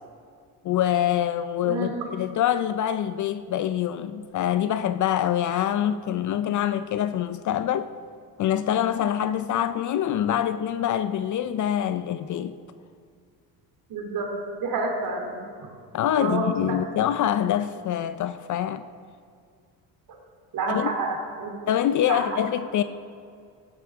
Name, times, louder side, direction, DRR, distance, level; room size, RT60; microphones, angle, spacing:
voice 1, 0.6-7.9 8.4-12.6 15.9-18.9 20.7-20.9 21.7-22.8, left 10 dB, 45° left, 0.5 m, -25 dB
voice 2, 13.9-14.3 14.6-15.7 16.2-16.8 20.5-21.5 22.1-22.2, right 3 dB, 55° right, 2.6 m, -29 dB
15.0 x 10.5 x 3.5 m
cardioid pair, 95°, 41 cm